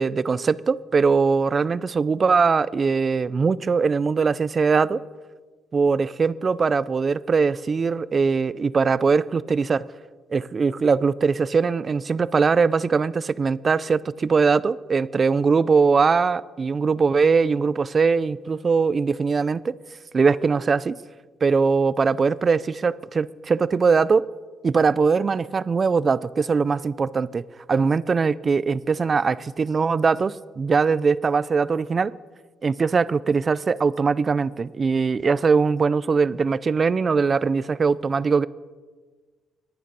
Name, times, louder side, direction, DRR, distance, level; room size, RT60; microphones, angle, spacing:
voice 1, 0.0-5.0 5.7-9.8 10.3-19.8 20.1-21.0 21.4-24.3 24.6-32.1 32.6-38.5, right 5 dB, 40° right, 18 dB, 0.5 m, -21 dB
21.5 x 9.4 x 5.5 m, 1.4 s
cardioid pair, 90°, 0 cm